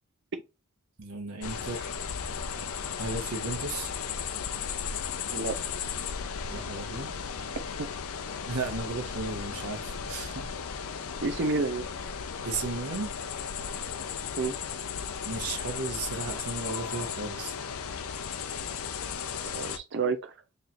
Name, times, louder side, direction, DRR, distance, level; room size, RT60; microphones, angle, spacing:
voice 1, 1.0-1.9 3.0-3.9 6.5-7.1 8.5-10.5 12.4-13.1 15.2-17.5, right 3 dB, 90° right, 1.0 m, -35 dB
sound 1, 1.4-19.8, left 6 dB, 65° left, 0.5 m, -35 dB
voice 2, 11.2-11.8 14.4-14.6 19.4-20.3, right 4 dB, 55° right, 0.6 m, -29 dB
4.2 x 3.3 x 2.4 m
head